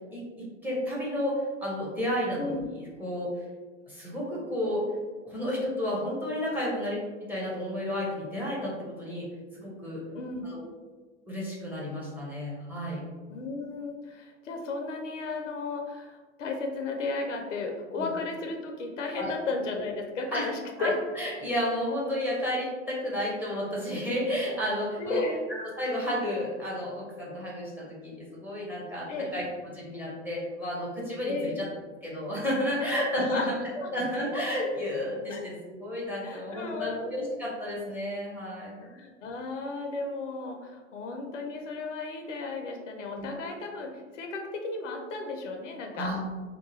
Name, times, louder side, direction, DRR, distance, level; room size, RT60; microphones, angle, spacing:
voice 1, 0.1-3.3 3.9-4.8 5.2-9.3 9.6-10.0 10.4-10.6 11.3-13.1 18.0-18.1 19.1-19.4 20.3-20.5 20.8-25.2 25.5-29.4 29.7-31.7 32.0-38.9 43.1-43.2 45.9-46.2, left 1 dB, 5° right, -5 dB, 0.8 m, -32 dB
voice 2, 10.1-10.5 13.3-20.9 25.0-25.4 29.1-29.3 31.2-31.6 32.8-33.5 33.8-33.9 35.3-35.4 36.2-37.0 38.8-46.1, left 3 dB, 75° left, 3 dB, 0.6 m, -34 dB
2.7 x 2.2 x 2.7 m, 1.3 s
figure-of-eight pair, 90°, 38 cm